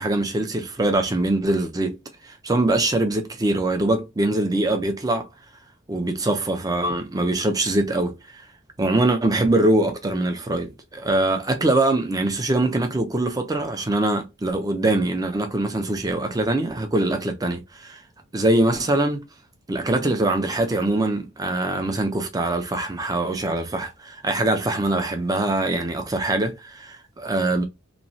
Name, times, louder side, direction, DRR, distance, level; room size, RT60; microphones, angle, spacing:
voice 1, 0.0-2.0 2.3-5.3 5.9-8.4 8.8-18.0 18.3-19.3 19.7-27.6, right 2 dB, 15° right, 0.5 m, -23 dB
3.0 x 2.2 x 2.7 m
head